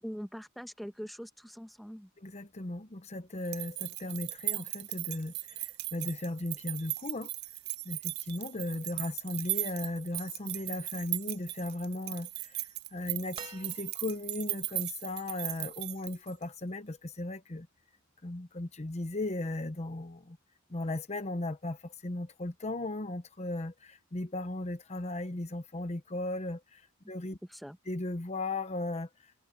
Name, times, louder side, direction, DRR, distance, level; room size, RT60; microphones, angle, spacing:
voice 1, 0.0-2.1 27.5-27.8, equal, ahead, 1.2 m, -43 dB
voice 2, 2.2-7.3 7.8-17.7 18.2-20.4 20.7-27.4 27.9-29.4, left 2 dB, 30° left, 0.9 m, -37 dB
sound 1, 3.4-16.4, right 18 dB, 50° right, 0.5 m, -38 dB
sound 2, 13.3-14.4 15.9-16.0, right 5 dB, 25° right, 1.7 m, -48 dB
head